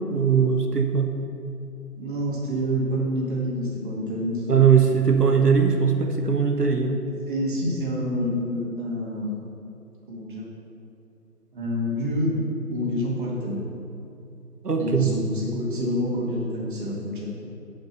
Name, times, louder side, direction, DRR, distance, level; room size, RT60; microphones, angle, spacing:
voice 1, 0.1-1.1 4.5-7.0 14.6-15.1, right 6 dB, 80° right, 4 dB, 1.3 m, -20 dB
voice 2, 2.0-4.5 7.3-9.4 10.1-10.4 11.5-12.3 12.7-13.6 14.8-17.3, equal, 30° right, -4 dB, 2.0 m, -27 dB
11.5 x 5.3 x 5.7 m, 2.7 s
figure-of-eight pair, 150°, 47 cm